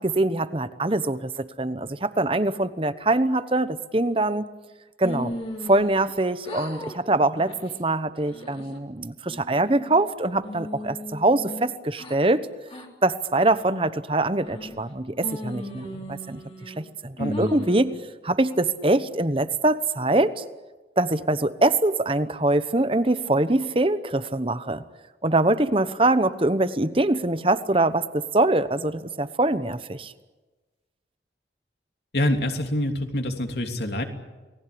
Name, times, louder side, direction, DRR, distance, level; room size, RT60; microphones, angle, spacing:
voice 1, 0.0-4.5 5.0-5.3 5.6-12.5 13.0-16.4 16.7-17.9 18.2-20.4 21.0-24.8 25.2-30.1, right 2 dB, 30° right, 13 dB, 1.0 m, -23 dB
sound 1, 5.0-6.2 6.4-7.0 7.4-7.7 8.2-8.8 9.3-10.0 10.4-12.2 12.7-12.9 13.4-13.9 14.4-14.9 15.2-16.8 17.3-17.9, left 1 dB, 30° left, 3.3 m, -37 dB
voice 2, 17.2-17.5 32.1-34.0, left 1 dB, 65° left, 4 dB, 3.0 m, -26 dB
29.5 x 19.5 x 8.7 m, 1.2 s
head